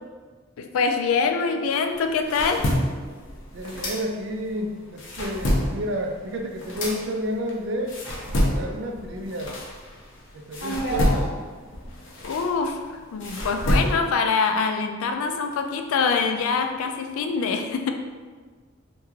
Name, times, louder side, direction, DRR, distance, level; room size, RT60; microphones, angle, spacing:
voice 1, 0.6-2.7 12.2-17.9, left 5 dB, 90° left, 6 dB, 0.3 m, -24 dB
sound 1, 1.9-4.5 4.8-10.1 10.5-14.3, equal, 65° left, 0.7 m, -27 dB
voice 2, 3.5-8.0 8.4-9.5 10.3-11.3, equal, 55° right, 3 dB, 0.4 m, -30 dB
3.1 x 2.2 x 3.5 m, 1.5 s
head